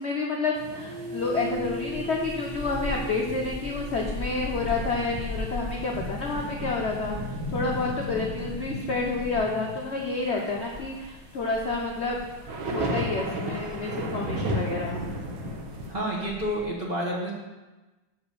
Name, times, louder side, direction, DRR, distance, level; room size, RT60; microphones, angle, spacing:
voice 1, 0.0-12.2 12.7-15.0, left 3 dB, 60° left, -1 dB, 0.7 m, -29 dB
sound 1, 0.6-15.9, equal, 85° right, 1.8 m, -35 dB
sound 2, 0.7-9.2, right 2 dB, 30° left, 1.9 m, -41 dB
Gull seagull, 1.3-16.6, left 2 dB, 15° right, 1.0 m, -40 dB
voice 2, 15.9-17.3, equal, 30° right, -4 dB, 1.3 m, -29 dB
7.0 x 4.9 x 6.7 m, 1.2 s
omnidirectional pair, 2.2 m